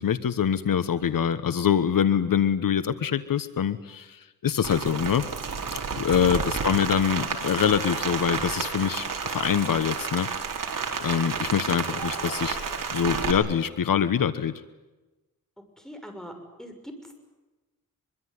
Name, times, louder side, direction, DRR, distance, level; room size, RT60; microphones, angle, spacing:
voice 1, 0.0-5.6 6.0-10.3 11.0-12.6 12.9-14.6, left 8 dB, 70° left, 13 dB, 1.2 m, -25 dB
Rain, 4.6-13.3, right 5 dB, 65° right, 4.4 m, -31 dB
voice 2, 15.8-16.3 16.6-17.2, equal, ahead, 4 dB, 6.6 m, -42 dB
24.0 x 24.0 x 9.6 m, 1.1 s
wide cardioid pair, 110°, 35 cm